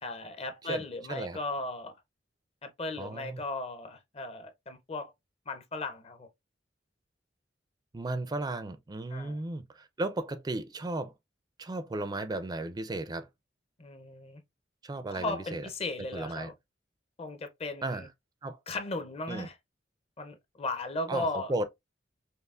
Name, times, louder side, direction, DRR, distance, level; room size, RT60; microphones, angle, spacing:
voice 1, 0.0-1.9 2.6-5.1 5.5-6.3 9.1-9.4 13.8-14.4 15.1-16.5 17.2-18.1 18.7-19.6 20.2-21.5, left 2 dB, 35° left, 0.6 m, -36 dB
voice 2, 0.7-1.4 3.0-3.4 7.9-11.1 11.6-13.3 14.8-15.7 16.1-16.5 17.8-18.1 18.4-18.6 19.3-19.5 21.1-21.6, right 2 dB, 20° right, 0.4 m, -35 dB
5.4 x 2.0 x 2.4 m
head